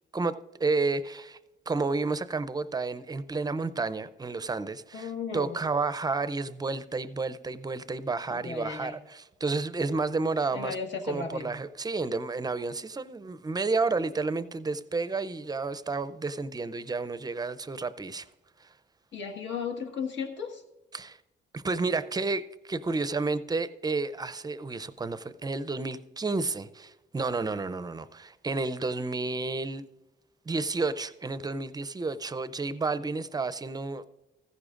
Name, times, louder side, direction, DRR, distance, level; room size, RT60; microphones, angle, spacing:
voice 1, 0.6-1.4 1.7-10.8 11.1-18.3 20.9-21.2 21.5-29.8 30.5-34.1, right 3 dB, 20° right, 0.5 m, -31 dB
voice 2, 4.9-5.6 8.3-9.0 10.5-11.5 19.1-20.6, left 5 dB, 70° left, 1.6 m, -35 dB
15.0 x 15.0 x 2.5 m
cardioid pair, 90°, 20 cm